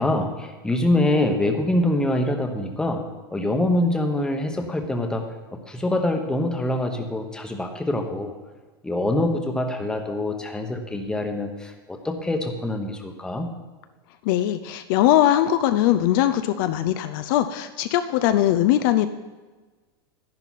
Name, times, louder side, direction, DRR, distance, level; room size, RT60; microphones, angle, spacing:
voice 1, 0.0-3.0 3.3-5.2 5.5-8.3 8.8-13.5, left 1 dB, 5° left, 4 dB, 1.1 m, -24 dB
voice 2, 14.2-19.1, left 12 dB, 55° left, 10 dB, 0.6 m, -20 dB
10.5 x 10.5 x 4.2 m, 1.3 s
supercardioid pair, 135°, 13 cm